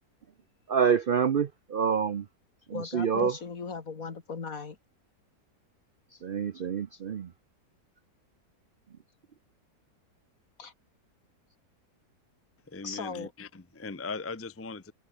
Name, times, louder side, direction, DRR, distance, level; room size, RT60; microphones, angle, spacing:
voice 1, 0.7-2.3 2.7-3.4 6.2-7.3, right 7 dB, 55° right, 0.6 m, -27 dB
voice 2, 2.7-4.8 10.6-10.7 12.8-13.3, left 5 dB, 60° left, 2.5 m, -37 dB
voice 3, 12.7-14.9, left 4 dB, 10° left, 0.6 m, -39 dB
omnidirectional pair, 1.7 m